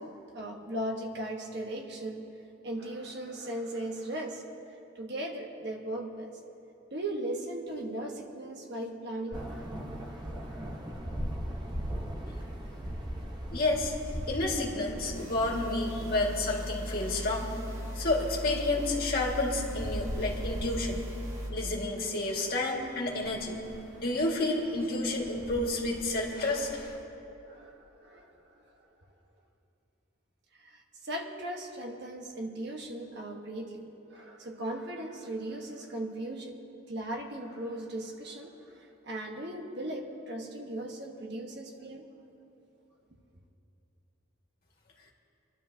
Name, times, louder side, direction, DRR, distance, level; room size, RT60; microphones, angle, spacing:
voice 1, 0.0-2.3 2.6-4.4 4.9-6.3 6.9-10.7 18.0-18.1 27.4-28.6 30.6-36.6 36.9-42.0, right 1 dB, 55° right, 1 dB, 1.4 m, -38 dB
sound 1, 9.3-27.0, equal, 20° right, 1.0 m, -41 dB
voice 2, 13.5-13.9 14.3-17.5 18.0-21.0 21.5-23.6 24.0-26.9, left 2 dB, 50° left, -2 dB, 2.0 m, -30 dB
sound 2, 15.1-21.5, equal, 90° right, 2.0 m, -38 dB
25.5 x 12.0 x 2.8 m, 2.9 s
head